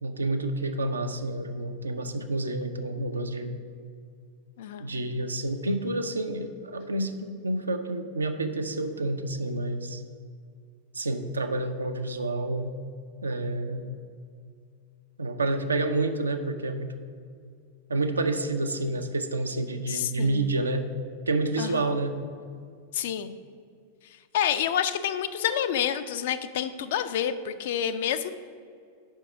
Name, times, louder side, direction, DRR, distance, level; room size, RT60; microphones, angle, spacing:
voice 1, 0.0-3.5 4.8-10.0 10.9-12.7 13.2-14.0 15.2-16.9 17.9-20.9 21.3-22.2, right 2 dB, 75° right, 7 dB, 0.4 m, -29 dB
voice 2, 4.6-4.9 19.9-20.5 21.6-21.9 22.9-23.3 24.3-28.3, left 9 dB, 55° left, 11 dB, 0.3 m, -28 dB
5.3 x 4.5 x 6.0 m, 2.2 s
figure-of-eight pair, 90°, 0 cm